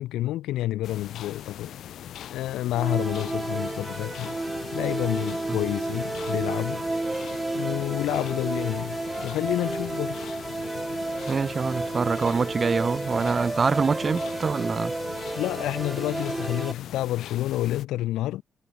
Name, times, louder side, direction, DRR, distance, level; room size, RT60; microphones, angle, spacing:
voice 1, 0.0-1.7 2.3-4.4 4.7-6.9 7.5-10.3 15.4-18.4, left 15 dB, 90° left, 1.0 m, -29 dB
sound 1, 0.8-17.9, left 11 dB, 70° left, 3.9 m, -41 dB
sound 2, 2.7-16.7, right 2 dB, 15° right, 1.1 m, -31 dB
voice 2, 11.3-14.9, right 5 dB, 35° right, 2.8 m, -25 dB
cardioid pair, 90°, 0 cm